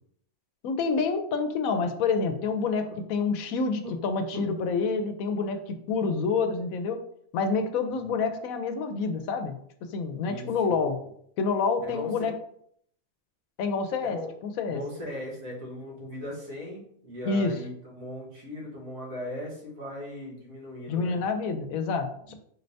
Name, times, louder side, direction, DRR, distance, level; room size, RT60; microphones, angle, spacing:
voice 1, 0.6-7.0 7.3-9.5 9.8-11.0 11.4-12.3 13.6-14.2 14.4-14.8 17.2-17.5 20.9-22.3, left 4 dB, 90° left, 7 dB, 1.0 m, -28 dB
voice 2, 10.2-10.8 11.8-12.3 14.1-14.3 14.6-21.2 22.2-22.3, left 1 dB, 80° right, -3 dB, 1.7 m, -38 dB
4.3 x 3.2 x 2.6 m, 0.67 s
omnidirectional pair, 1.4 m